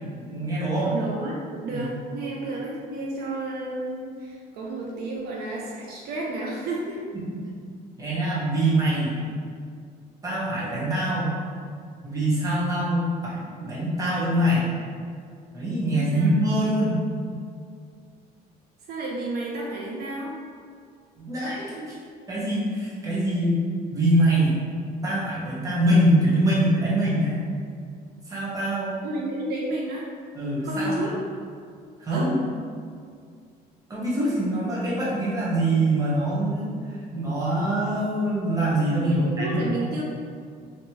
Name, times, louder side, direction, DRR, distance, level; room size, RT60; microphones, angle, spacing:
voice 1, 0.2-0.9 1.7-1.8 8.0-9.2 10.2-11.4 12.0-14.7 15.5-17.0 21.2-22.0 22.3-23.6 23.9-24.5 25.0-27.4 28.3-29.0 30.3-31.1 32.0-32.5 33.9-36.7 37.1-39.9, right 1 dB, 20° right, -8 dB, 1.2 m, -24 dB
voice 2, 0.8-7.0 15.9-16.3 18.9-20.3 29.0-30.1 30.6-31.1 32.1-32.3 39.0-40.0, right 2 dB, 70° right, -3 dB, 0.5 m, -31 dB
3.1 x 2.9 x 3.0 m, 2.2 s
cardioid pair, 110°, 17 cm